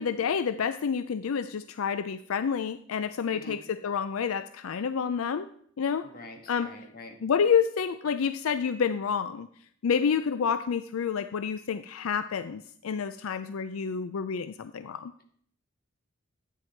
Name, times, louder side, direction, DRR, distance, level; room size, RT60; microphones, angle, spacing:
voice 1, 0.0-5.5 5.8-6.1 6.5-6.7 7.2-9.5 9.8-15.1, left 6 dB, 80° left, 13 dB, 0.4 m, -29 dB
voice 2, 3.3-3.6 6.0-7.2, left 1 dB, 45° left, 3 dB, 1.8 m, -45 dB
12.5 x 9.1 x 4.5 m, 0.63 s
head